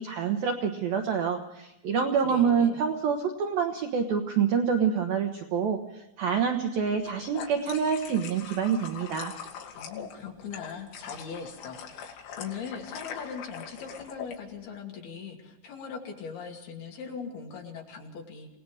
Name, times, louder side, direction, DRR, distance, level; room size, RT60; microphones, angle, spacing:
voice 1, 0.0-9.3, right 6 dB, 70° right, 3 dB, 2.4 m, -27 dB
voice 2, 1.9-2.8 9.8-18.5, left 6 dB, 55° left, 1 dB, 4.2 m, -40 dB
sound 1, 6.9-14.4, left 7 dB, 70° left, 4.5 m, -42 dB
28.0 x 19.0 x 4.9 m, 0.90 s
omnidirectional pair, 5.7 m